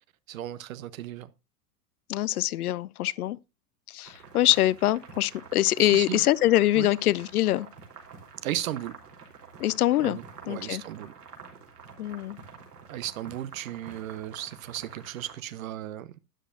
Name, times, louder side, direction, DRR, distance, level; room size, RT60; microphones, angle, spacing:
voice 1, 0.3-1.3 5.8-6.2 6.7-6.9 8.4-8.9 10.0-11.1 12.9-16.1, right 12 dB, 55° right, 0.8 m, -35 dB
voice 2, 2.1-3.4 3.9-7.7 9.6-10.2 10.5-10.8 12.0-12.4, left 14 dB, 65° left, 0.6 m, -24 dB
sound 1, 4.0-15.3, right 5 dB, 75° right, 3.5 m, -48 dB
12.5 x 9.9 x 2.5 m
figure-of-eight pair, 95°, 48 cm